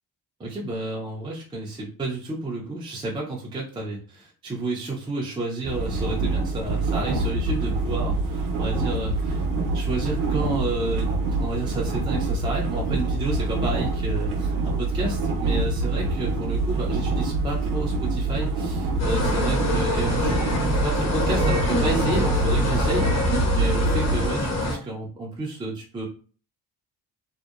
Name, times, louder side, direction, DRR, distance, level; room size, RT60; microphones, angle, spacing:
voice 1, 0.4-9.4 9.7-11.1 11.4-20.5 20.8-26.1, right 2 dB, 15° right, -3 dB, 0.4 m, -31 dB
sound 1, 5.6-24.3, right 2 dB, 55° right, 0.7 m, -25 dB
sound 2, 19.0-24.7, left 2 dB, 45° left, 0.8 m, -26 dB
2.8 x 2.0 x 2.3 m, 0.40 s
cardioid pair, 125°, 39 cm